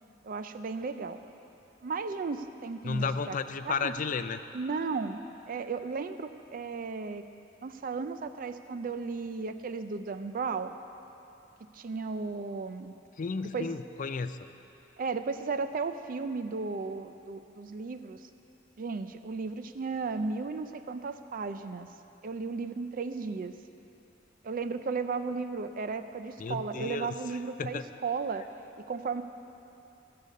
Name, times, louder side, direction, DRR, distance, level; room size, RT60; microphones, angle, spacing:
voice 1, 0.2-1.2 1.8-3.4 3.6-3.9 4.5-5.2 5.5-7.2 7.6-10.8 11.6-13.0 13.4-13.7 15.0-18.3 18.8-21.9 22.2-23.5 24.4-28.5 28.8-29.2, right 4 dB, 45° right, 10 dB, 0.4 m, -35 dB
voice 2, 2.8-4.4 13.2-14.4 26.4-27.1 27.6-27.8, left 5 dB, 45° left, 11 dB, 0.4 m, -33 dB
13.0 x 6.7 x 8.4 m, 2.8 s
head